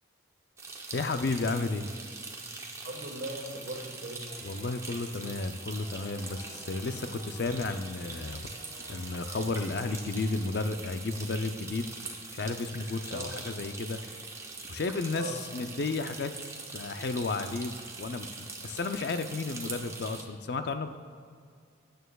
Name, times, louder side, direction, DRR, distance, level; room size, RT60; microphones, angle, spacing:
sound 1, 0.6-20.2, right 3 dB, 15° right, 0.7 m, -43 dB
voice 1, 0.9-1.9 4.4-8.5 8.8-11.9 12.3-14.0 14.7-16.3 16.7-20.9, left 3 dB, 55° left, 9 dB, 0.4 m, -33 dB
voice 2, 2.8-4.3 6.4-6.8 13.1-13.5 15.1-15.4, right 1 dB, 65° right, 1 dB, 1.4 m, -39 dB
sound 2, 4.3-10.8, equal, 25° left, 1.5 m, -54 dB
13.0 x 9.1 x 2.3 m, 2.2 s
head